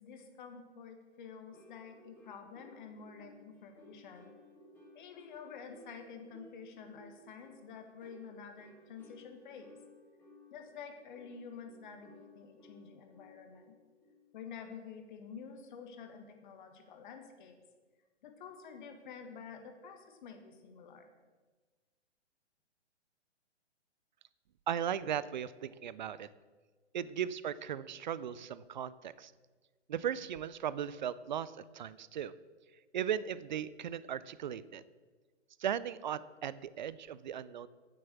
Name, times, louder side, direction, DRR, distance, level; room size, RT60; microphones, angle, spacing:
voice 1, 0.0-4.3 5.0-9.8 10.5-13.8 14.3-17.6 18.2-21.1, left 6 dB, 40° left, 6 dB, 1.6 m, -49 dB
sound 1, 1.5-14.4, left 1 dB, 5° left, 2.9 m, -59 dB
voice 2, 24.7-26.3 26.9-29.3 29.9-32.3 32.9-34.8 35.6-37.7, right 9 dB, 40° right, 17 dB, 0.5 m, -37 dB
9.4 x 7.6 x 7.2 m, 1.4 s
figure-of-eight pair, 120°, 36 cm